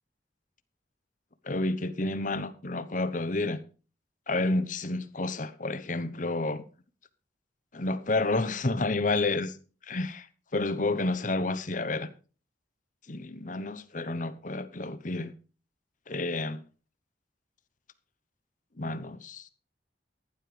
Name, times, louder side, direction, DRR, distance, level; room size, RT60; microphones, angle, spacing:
voice 1, 1.4-3.6 4.3-6.6 7.7-9.6 9.8-10.3 10.5-12.1 13.1-15.3 16.1-16.6 18.8-19.5, left 2 dB, 45° left, 1.0 m, -30 dB
14.5 x 11.5 x 3.3 m
head